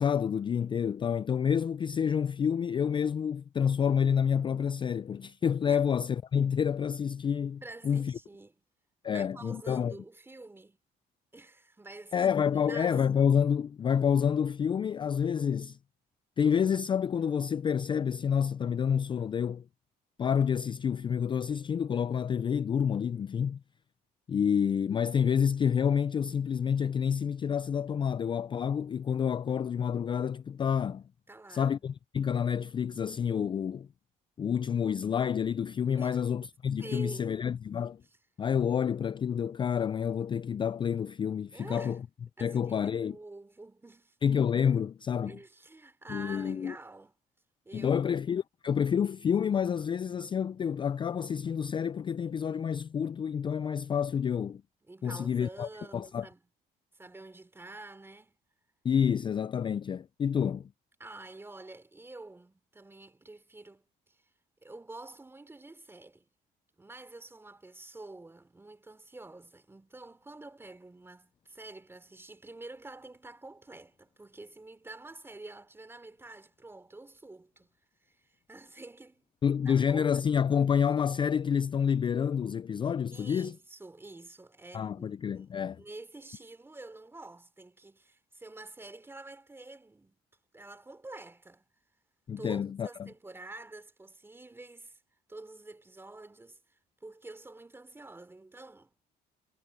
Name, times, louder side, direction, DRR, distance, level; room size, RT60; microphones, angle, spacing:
voice 1, 0.0-8.1 9.0-9.9 12.1-15.8 16.4-19.6 20.2-23.6 24.3-31.0 31.5-33.9 34.4-38.0 38.4-42.0 42.4-43.2 44.2-45.3 46.1-46.7 47.7-54.6 55.0-56.3 58.8-60.7 79.4-83.5 84.7-85.8 92.3-93.1, left 7 dB, 30° left, 0.4 m, -28 dB
voice 2, 7.6-8.6 9.1-10.8 11.3-12.3 12.6-13.0 31.3-31.8 36.0-36.2 36.8-37.4 38.0-38.2 41.5-42.0 42.4-44.2 45.2-47.1 47.6-48.0 54.8-56.4 56.9-58.4 61.0-64.3 64.6-66.3 66.8-77.7 78.0-79.3 79.6-80.1 83.1-85.5 85.7-90.2 90.5-91.6 92.4-95.0 95.3-98.9, right 2 dB, 15° right, 3.4 m, -48 dB
cardioid pair, 110°, 17 cm